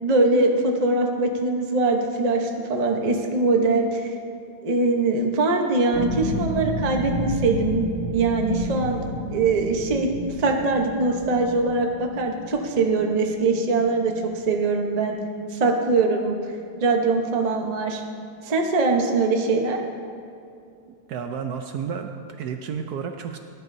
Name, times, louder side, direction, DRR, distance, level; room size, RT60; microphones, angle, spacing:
voice 1, 0.0-4.1 4.6-10.1 10.4-15.2 15.5-16.4 16.8-18.0 18.4-19.8, right 3 dB, 50° right, 2 dB, 0.4 m, -22 dB
sound 1, 5.9-16.1 16.4-17.1 17.5-17.6, equal, 80° left, 3.4 m, -32 dB
voice 2, 21.1-23.4, right 7 dB, 75° right, 5 dB, 0.9 m, -31 dB
19.0 x 10.5 x 2.7 m, 2.5 s
omnidirectional pair, 2.3 m